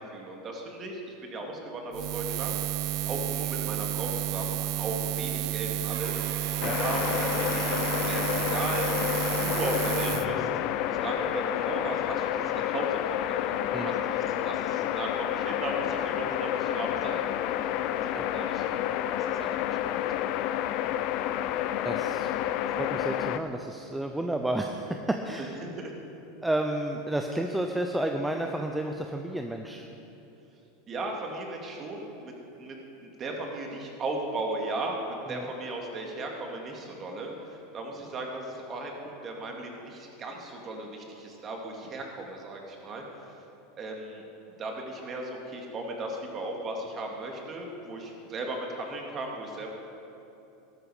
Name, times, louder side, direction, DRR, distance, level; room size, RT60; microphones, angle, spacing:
voice 1, 0.1-2.6 3.1-8.9 9.3-10.5 10.9-17.3 18.0-18.7 19.1-20.3 25.4-25.9 30.9-32.8 33.0-43.0 43.8-44.2 44.6-49.7, right 2 dB, 30° right, 1 dB, 2.3 m, -36 dB
Buzz, 1.9-10.3, right 14 dB, 55° right, 0.5 m, -31 dB
Squeak / Wood, 5.8-10.3, right 3 dB, 85° right, 2.7 m, -41 dB
sound 1, 6.6-23.4, left 11 dB, 55° left, 0.5 m, -29 dB
voice 2, 21.8-22.3 22.8-25.6 26.4-29.9 35.3-35.5, right 1 dB, 5° right, 3 dB, 0.7 m, -31 dB
13.5 x 13.0 x 5.0 m, 2.9 s
supercardioid pair, 130°, 0 cm